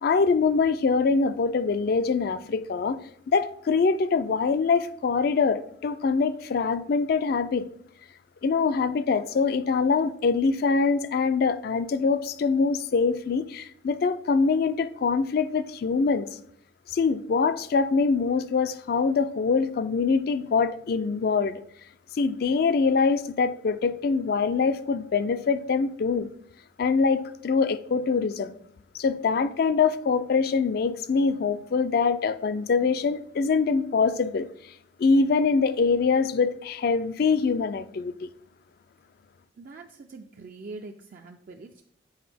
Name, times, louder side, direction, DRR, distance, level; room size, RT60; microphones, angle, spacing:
voice 1, 0.0-3.0 3.3-7.7 8.4-16.3 16.9-21.6 22.1-26.3 26.8-28.5 28.9-34.5 35.0-38.3, left 4 dB, 55° left, 0.4 m, -24 dB
voice 2, 39.6-41.8, right 3 dB, 50° right, 0.4 m, -43 dB
7.9 x 4.5 x 3.4 m
head